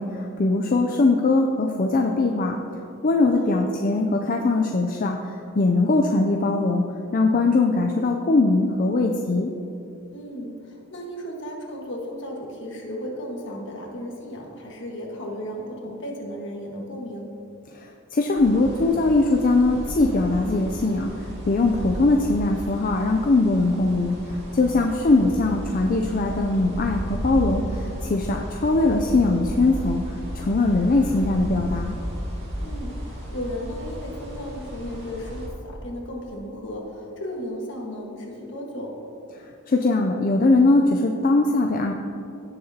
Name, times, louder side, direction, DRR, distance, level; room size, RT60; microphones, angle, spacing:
voice 1, 0.0-2.6 3.0-6.8 7.1-9.5 17.7-32.0 39.7-41.9, left 2 dB, 40° left, 2 dB, 0.5 m, -21 dB
voice 2, 3.4-3.8 10.1-17.3 24.9-25.4 32.6-39.0, equal, 60° left, -1 dB, 1.6 m, -35 dB
sound 1, 18.4-35.5, equal, 60° right, 2.3 m, -34 dB
17.0 x 6.7 x 2.9 m, 2.7 s
head